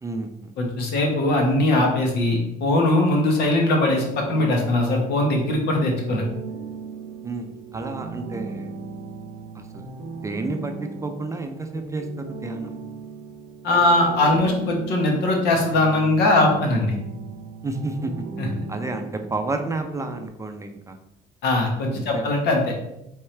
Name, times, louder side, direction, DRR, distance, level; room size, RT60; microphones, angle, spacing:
voice 1, 0.0-0.5 7.2-8.7 9.5-9.9 10.1-12.8 17.6-18.2 18.7-21.0 21.9-22.4, right 3 dB, 20° right, 6 dB, 0.4 m, -31 dB
voice 2, 0.6-6.2 13.6-17.0 18.4-18.5 21.4-22.7, left 2 dB, 75° left, 1 dB, 1.2 m, -20 dB
sound 1, 4.0-20.3, right 4 dB, 65° right, 0.6 m, -37 dB
4.4 x 3.6 x 3.2 m, 0.84 s
cardioid pair, 110°, 17 cm